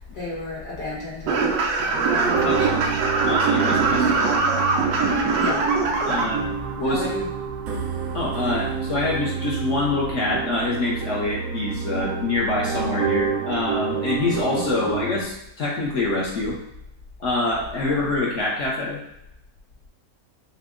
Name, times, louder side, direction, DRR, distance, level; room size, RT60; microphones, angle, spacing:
voice 1, 0.1-1.5 1.8-3.0 5.4-5.7 6.8-7.3 14.6-14.9, left 2 dB, 85° left, -6 dB, 2.2 m, -33 dB
sound 1, 1.3-6.2, right 4 dB, 90° right, 1.3 m, -22 dB
sound 2, 1.9-15.2, right 6 dB, 65° right, 0.9 m, -29 dB
voice 2, 3.2-4.1 6.0-6.5 6.8-7.1 8.1-16.6 17.2-19.0, left 2 dB, 55° left, -3 dB, 1.0 m, -25 dB
5.7 x 2.1 x 3.7 m, 0.81 s
omnidirectional pair, 1.8 m